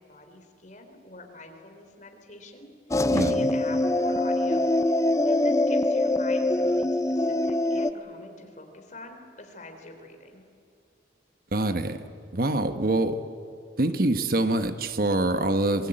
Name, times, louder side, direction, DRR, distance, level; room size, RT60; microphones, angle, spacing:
voice 1, 0.0-2.7 3.1-4.7 5.2-10.4, left 2 dB, 45° left, 4 dB, 3.7 m, -44 dB
sound 1, 2.9-7.9, left 1 dB, 15° left, 0.5 m, -23 dB
voice 2, 3.1-3.5 11.5-12.0 12.3-13.2 13.8-15.9, right 2 dB, 55° right, 9 dB, 1.2 m, -25 dB
26.0 x 21.0 x 8.9 m, 2.5 s
head